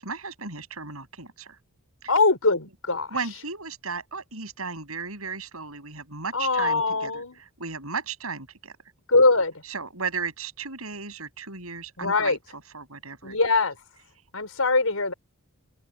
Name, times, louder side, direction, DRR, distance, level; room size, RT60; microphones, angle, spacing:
voice 1, 0.0-1.6 2.0-2.1 3.1-7.2 7.6-8.7 9.7-12.4 12.7-13.4, right 4 dB, 80° right, 7.9 m, -35 dB
voice 2, 2.1-3.1 6.3-7.4 9.1-9.5 12.0-12.4 13.2-13.8 14.3-15.1, left 3 dB, 75° left, 5.1 m, -22 dB
head